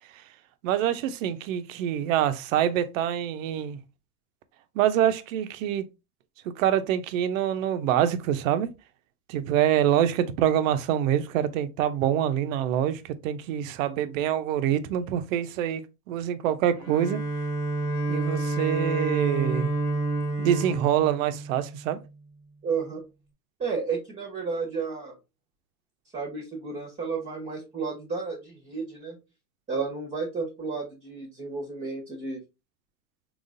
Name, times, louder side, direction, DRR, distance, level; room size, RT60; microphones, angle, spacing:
voice 1, 0.6-3.8 4.8-5.8 6.6-8.7 9.3-17.2 18.1-19.7 20.4-22.0, right 10 dB, 55° right, 0.6 m, -25 dB
Bowed string instrument, 16.7-22.0, right 2 dB, 60° left, 1.5 m, -29 dB
voice 2, 22.6-23.0 23.6-25.1 26.1-29.2 29.7-32.4, right 4 dB, 15° right, 1.0 m, -32 dB
3.9 x 3.0 x 2.5 m
hypercardioid pair, 100°, 47 cm